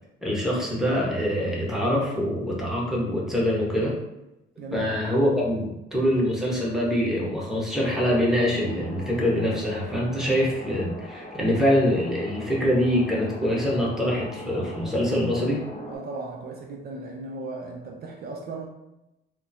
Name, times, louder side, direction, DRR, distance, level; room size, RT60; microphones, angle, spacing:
voice 1, 0.2-3.9 4.7-15.6, equal, ahead, -4 dB, 1.0 m, -24 dB
voice 2, 4.6-5.1 15.9-18.7, right 3 dB, 50° right, 1 dB, 0.4 m, -36 dB
sound 1, 7.7-16.0, left 1 dB, 35° left, 0.7 m, -41 dB
3.5 x 2.1 x 2.7 m, 0.92 s
cardioid pair, 90°, 20 cm